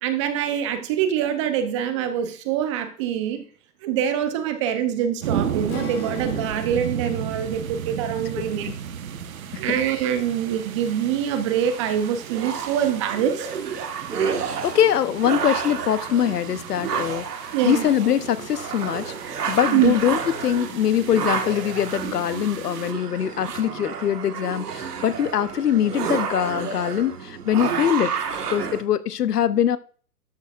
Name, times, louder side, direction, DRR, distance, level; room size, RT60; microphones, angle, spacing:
voice 1, 0.0-3.4 3.8-8.7 9.5-13.5 17.5-17.8 19.7-19.9, right 9 dB, 20° right, 0.6 m, -24 dB
sound 1, 5.2-22.9, right 8 dB, 60° right, 1.2 m, -35 dB
Strum, 5.7-10.0, left 9 dB, 45° left, 1.4 m, -42 dB
sound 2, 11.6-28.8, right 6 dB, 75° right, 1.7 m, -30 dB
voice 2, 14.6-17.2 17.6-19.1 19.5-28.1 28.5-29.8, left 10 dB, 75° left, 0.9 m, -23 dB
12.5 x 8.4 x 2.5 m
hypercardioid pair, 140°, 46 cm